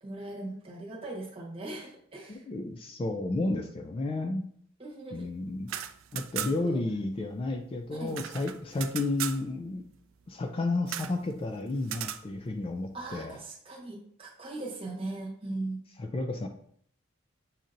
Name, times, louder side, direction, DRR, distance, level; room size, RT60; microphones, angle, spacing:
voice 1, 0.0-2.4 4.8-5.3 5.7-5.9 6.3-6.8 7.9-8.2 12.9-15.8, right 2 dB, 30° right, -3 dB, 1.2 m, -39 dB
voice 2, 2.3-4.5 5.1-5.7 6.1-9.9 10.3-13.4 16.0-16.5, left 2 dB, 25° left, 5 dB, 0.3 m, -32 dB
sound 1, 5.6-6.8 7.1-7.2 7.4-9.4 10.9-11.2 11.8-12.2, right 11 dB, 70° right, 0.3 m, -37 dB
7.3 x 2.8 x 2.5 m, 0.64 s
head